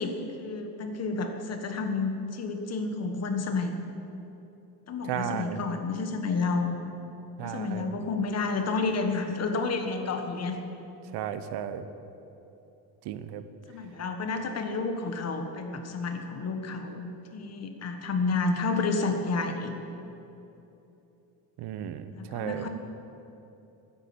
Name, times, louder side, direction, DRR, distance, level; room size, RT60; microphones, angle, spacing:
voice 1, 0.0-3.7 4.9-6.7 7.4-10.6 13.7-19.7 22.1-22.7, left 3 dB, 40° left, 5 dB, 1.5 m, -30 dB
voice 2, 5.1-5.6 7.4-7.9 11.1-11.9 13.0-13.4 21.6-22.7, right 10 dB, 85° right, 11 dB, 1.0 m, -34 dB
13.0 x 10.0 x 8.5 m, 2.9 s
cardioid pair, 155°, 39 cm